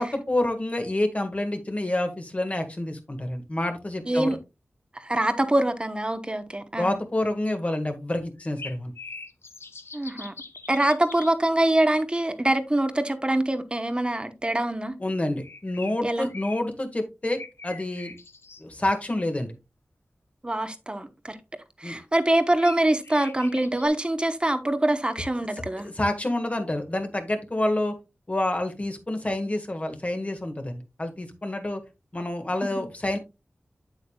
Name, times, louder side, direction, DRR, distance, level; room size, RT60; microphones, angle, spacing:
voice 1, 0.0-4.4 6.8-8.9 15.0-17.4 17.6-18.1 18.6-19.5 21.8-22.0 25.8-27.9 28.3-31.8 32.1-33.2, left 1 dB, 35° left, 1.7 m, -28 dB
voice 2, 4.1-4.4 4.9-6.9 9.9-10.3 10.7-14.9 16.0-16.3 20.4-21.4 21.8-25.9 32.6-32.7, right 1 dB, 25° right, 1.0 m, -24 dB
sound 1, 8.4-11.3 15.4-16.6 17.4-19.1 22.3-23.9, left 3 dB, 75° left, 0.9 m, -42 dB
8.4 x 8.0 x 2.3 m
wide cardioid pair, 70°, 4 cm